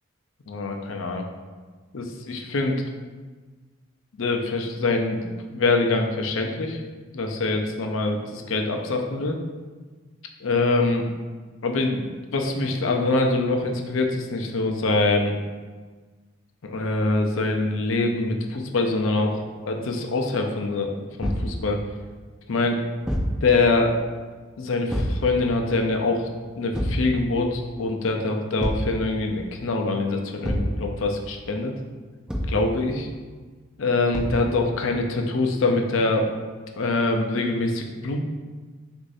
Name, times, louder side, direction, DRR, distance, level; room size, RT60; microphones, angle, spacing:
voice 1, 0.5-1.2 1.9-2.8 4.2-6.8 7.1-9.4 10.4-11.0 11.6-15.4 16.6-21.8 22.5-22.8 23.4-24.0 24.6-26.3 26.6-31.7 32.5-33.1 33.8-36.3 36.8-38.2, left 3 dB, 85° left, 3 dB, 0.5 m, -24 dB
Thump thud, 21.2-21.5 23.0-23.4 24.9-25.2 26.7-27.1 28.6-28.9 30.4-30.8 32.3-32.6 34.1-34.5, equal, 5° right, 0.5 m, -26 dB
6.3 x 2.6 x 2.6 m, 1.4 s
head